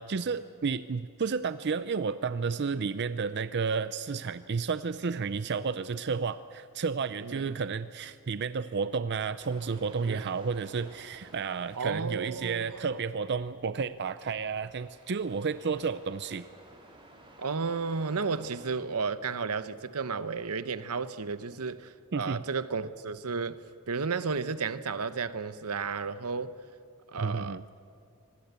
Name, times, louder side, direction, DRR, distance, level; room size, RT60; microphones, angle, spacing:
voice 1, 0.0-16.5 22.1-22.4 27.2-27.6, right 5 dB, 50° right, 0.5 m, -31 dB
voice 2, 7.2-7.5 10.1-10.3 11.7-12.8 17.4-26.5 27.1-27.6, right 5 dB, 80° right, 0.9 m, -33 dB
sound 1, 9.4-18.8, right 1 dB, 25° right, 3.3 m, -55 dB
25.0 x 19.0 x 8.2 m
head